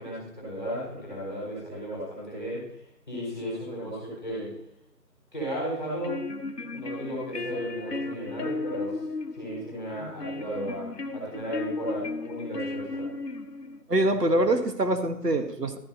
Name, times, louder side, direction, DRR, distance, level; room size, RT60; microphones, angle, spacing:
voice 1, 0.0-4.5 5.3-6.3 6.7-9.0 9.3-13.1, equal, 10° left, -7 dB, 4.0 m, -35 dB
sound 1, 5.8-13.8, left 3 dB, 80° left, 0.9 m, -35 dB
voice 2, 13.9-15.8, right 1 dB, 75° right, 7 dB, 1.3 m, -24 dB
12.5 x 11.5 x 2.7 m, 0.79 s
figure-of-eight pair, 175°, 48 cm